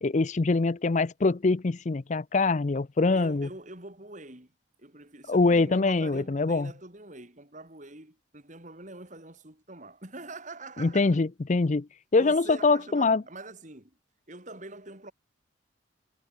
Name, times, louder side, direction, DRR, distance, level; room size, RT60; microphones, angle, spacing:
voice 1, 0.0-3.5 5.3-6.7 10.8-13.2, left 3 dB, 35° left, 0.5 m, -24 dB
voice 2, 3.1-4.5 4.8-11.2 12.2-14.0 14.3-15.1, right 2 dB, 40° right, 3.5 m, -44 dB
head